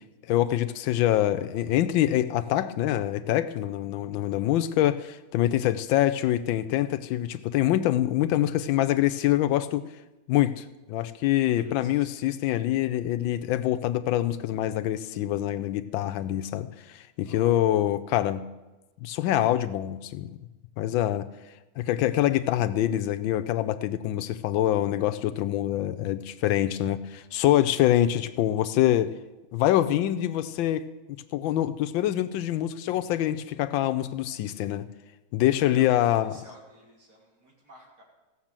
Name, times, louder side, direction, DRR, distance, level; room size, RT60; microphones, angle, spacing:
voice 1, 0.3-9.8 10.3-18.4 19.0-20.3 20.8-21.3 21.8-29.1 29.5-30.8 31.3-34.9 35.3-36.3, left 13 dB, 85° left, 10 dB, 1.4 m, -25 dB
voice 2, 4.3-4.6 11.4-12.2 17.2-17.6 35.6-38.0, equal, 55° right, -3 dB, 3.5 m, -52 dB
15.0 x 6.8 x 7.4 m, 1.1 s
omnidirectional pair, 2.1 m